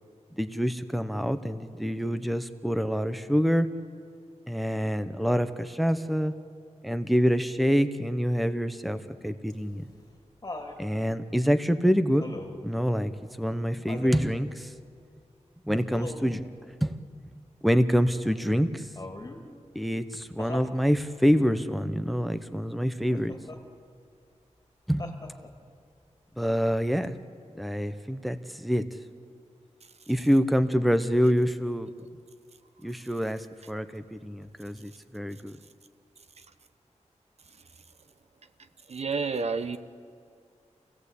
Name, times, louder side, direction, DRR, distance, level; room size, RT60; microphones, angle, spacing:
voice 1, 0.3-3.7 4.5-6.3 6.8-9.8 10.8-12.3 12.6-13.1 13.4-14.7 15.7-16.4 16.8-16.9 17.6-18.9 19.7-23.3 24.9-25.1 26.4-27.2 27.6-28.8 30.1-31.9 32.8-35.5, equal, ahead, 11 dB, 0.9 m, -26 dB
Laughter, 9.5-10.8 12.2-12.7 13.9-14.3 15.9-16.4 19.0-19.5 20.4-20.8 23.1-23.6 25.0-25.6 27.0-27.1, left 2 dB, 30° left, 2.6 m, -40 dB
voice 2, 38.9-39.8, right 4 dB, 60° right, 11 dB, 1.0 m, -29 dB
28.0 x 17.0 x 8.4 m, 2.2 s
wide cardioid pair, 120°, 12 cm